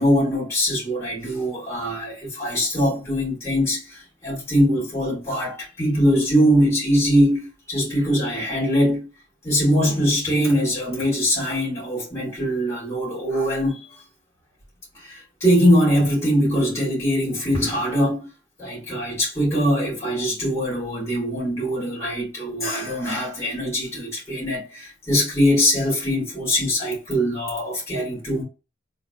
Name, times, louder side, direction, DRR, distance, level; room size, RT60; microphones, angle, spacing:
voice 1, 0.0-9.1 9.4-14.0 14.9-18.3 18.6-28.4, equal, 15° left, 2.4 m, -22 dB
4.0 x 3.7 x 2.4 m
head